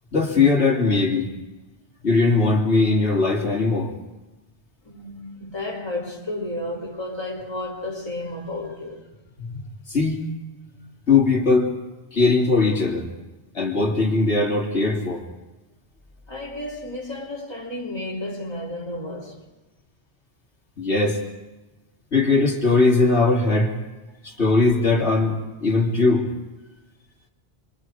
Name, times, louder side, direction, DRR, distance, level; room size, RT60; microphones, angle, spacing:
voice 1, 0.1-1.3 2.0-3.9 9.4-9.6 9.9-10.2 11.1-11.7 12.1-13.1 13.5-15.2 20.8-21.2 22.1-23.7 24.2-26.3, left 3 dB, 85° left, 3.1 m, -20 dB
voice 2, 4.8-9.1 16.3-19.5 26.6-26.7, left 1 dB, 25° left, 3.5 m, -32 dB
28.0 x 24.0 x 4.9 m
omnidirectional pair, 1.1 m